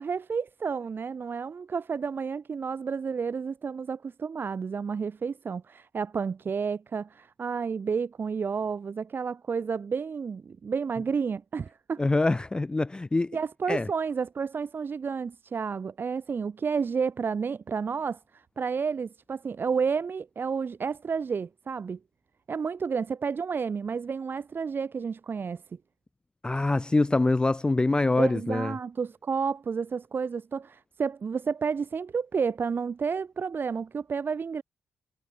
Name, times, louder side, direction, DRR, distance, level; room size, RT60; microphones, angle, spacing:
voice 1, 0.0-12.0 13.3-22.0 22.5-25.6 28.2-34.6, right 5 dB, 45° right, 0.9 m, -31 dB
voice 2, 12.0-13.4 13.7-13.9 26.4-28.7, left 2 dB, 20° left, 0.4 m, -25 dB
cardioid pair, 80°, 5 cm